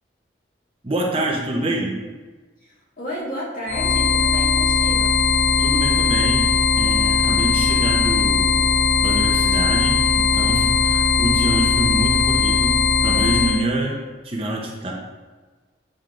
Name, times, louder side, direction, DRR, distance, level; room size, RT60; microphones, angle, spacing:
voice 1, 0.8-2.0 5.6-6.5 6.8-8.7 9.0-14.9, right 1 dB, 30° right, -2 dB, 0.8 m, -26 dB
voice 2, 2.6-5.2, equal, 45° left, -6 dB, 2.0 m, -32 dB
sound 1, 3.7-13.6, left 5 dB, 70° left, 0.6 m, -19 dB
9.1 x 5.1 x 2.5 m, 1.3 s
head